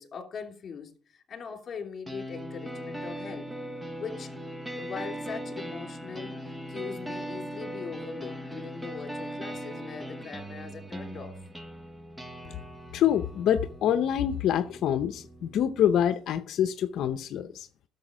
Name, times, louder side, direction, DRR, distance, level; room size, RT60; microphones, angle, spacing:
voice 1, 0.0-3.5 4.0-4.3 4.8-11.4, left 6 dB, 40° left, 2.8 m, -41 dB
sound 1, 2.1-16.0, right 1 dB, 10° right, 0.9 m, -39 dB
voice 2, 12.9-17.7, left 10 dB, 65° left, 0.7 m, -26 dB
11.5 x 6.9 x 5.0 m
cardioid pair, 120°, 0 cm